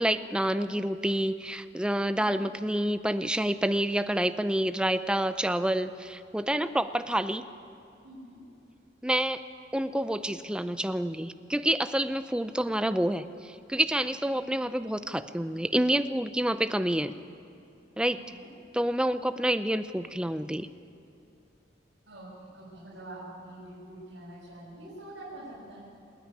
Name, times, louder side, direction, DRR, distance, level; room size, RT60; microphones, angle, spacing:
voice 1, 0.0-7.5 9.0-9.4 9.7-17.1 18.0-18.2 18.7-20.7, right 1 dB, 5° right, 11 dB, 0.5 m, -28 dB
voice 2, 8.0-8.4 14.2-14.4 18.0-18.5 22.1-25.8, right 1 dB, 65° right, -9 dB, 6.9 m, -46 dB
28.0 x 9.4 x 9.9 m, 2.7 s
head